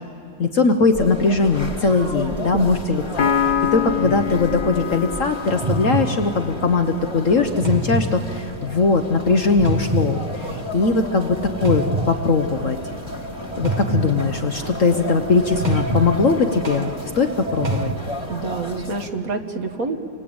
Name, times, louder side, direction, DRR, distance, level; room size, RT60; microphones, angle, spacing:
voice 1, 0.4-12.8 13.6-17.9, left 4 dB, 50° left, 6 dB, 1.2 m, -20 dB
sound 1, 0.9-19.1, left 1 dB, 15° left, 1.8 m, -34 dB
voice 2, 2.5-2.8 18.3-20.0, right 3 dB, 50° right, 6 dB, 1.8 m, -27 dB
Piano, 3.2-6.8, left 8 dB, 65° left, 2.1 m, -25 dB
sound 2, 4.0-4.4 5.4-17.9, right 2 dB, 30° right, 1.0 m, -28 dB
28.5 x 24.0 x 8.8 m, 2.5 s
omnidirectional pair, 2.1 m